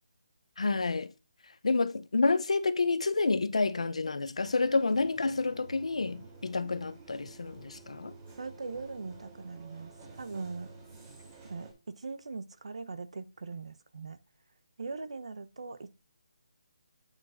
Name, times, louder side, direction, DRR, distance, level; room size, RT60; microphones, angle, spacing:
voice 1, 0.6-1.1 1.6-8.1, left 3 dB, 80° left, 0.7 m, -29 dB
sound 1, 4.4-11.7, right 4 dB, 25° right, 3.1 m, -51 dB
voice 2, 8.4-10.7 11.5-14.2 14.8-15.9, right 4 dB, 70° right, 0.9 m, -41 dB
9.1 x 7.3 x 2.6 m
figure-of-eight pair, 160°, 3 cm